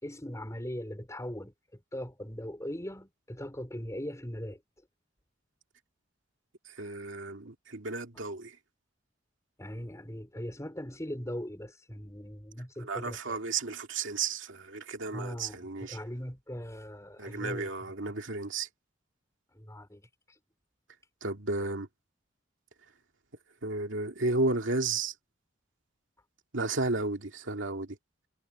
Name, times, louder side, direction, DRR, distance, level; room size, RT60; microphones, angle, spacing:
voice 1, 0.0-4.6 8.1-8.2 9.6-13.4 15.1-17.7 19.5-20.4, equal, 15° left, 5.1 m, -40 dB
voice 2, 6.7-8.6 12.8-16.0 17.2-18.7 21.2-21.9 23.6-25.1 26.5-28.0, right 3 dB, 75° right, 2.4 m, -33 dB
head